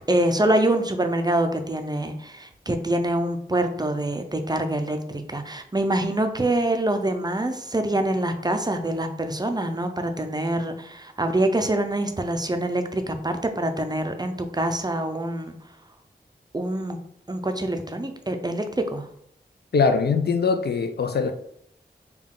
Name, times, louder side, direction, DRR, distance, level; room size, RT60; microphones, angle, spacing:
voice 1, 0.1-15.5 16.5-17.0 17.3-19.1, right 1 dB, 25° right, 0.5 m, -25 dB
voice 2, 19.7-21.3, left 5 dB, 65° left, 0.4 m, -22 dB
3.5 x 2.3 x 3.7 m
wide cardioid pair, 50°, 18 cm